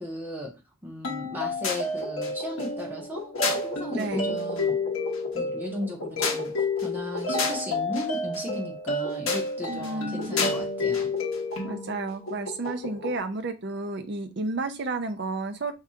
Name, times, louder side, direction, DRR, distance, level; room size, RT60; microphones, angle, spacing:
voice 1, 0.0-4.8 5.3-11.1, left 1 dB, 10° right, -2 dB, 1.0 m, -36 dB
sound 1, 1.0-13.2, left 3 dB, 85° left, 1.0 m, -29 dB
voice 2, 3.9-4.4 9.7-10.4 11.6-15.7, right 3 dB, 55° right, 8 dB, 0.5 m, -32 dB
4.7 x 2.7 x 2.4 m, 0.26 s
head